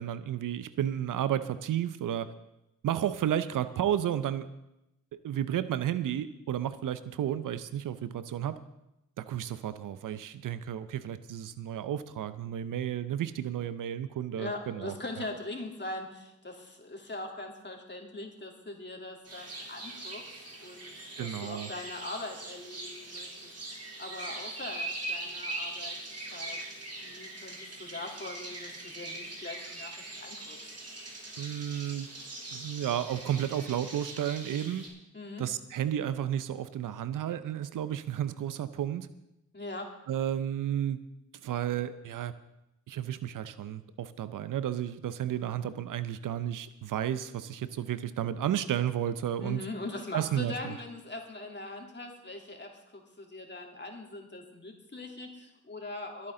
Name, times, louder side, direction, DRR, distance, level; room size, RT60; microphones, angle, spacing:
voice 1, 0.0-2.3 2.8-4.5 5.1-8.6 9.2-15.3 21.2-21.7 31.4-32.1 32.5-34.9 35.4-39.1 40.1-41.0 41.4-42.3 42.9-49.6 50.1-50.8, right 10 dB, 85° right, 14 dB, 0.6 m, -32 dB
voice 2, 14.3-20.2 20.6-23.3 24.0-26.0 26.3-26.6 27.0-30.7 35.1-35.4 39.5-39.9 49.4-56.3, left 2 dB, 35° left, 1 dB, 3.1 m, -41 dB
sound 1, 19.2-34.9, right 2 dB, 50° right, 3.4 m, -41 dB
24.5 x 8.5 x 3.8 m, 0.88 s
cardioid pair, 50°, 31 cm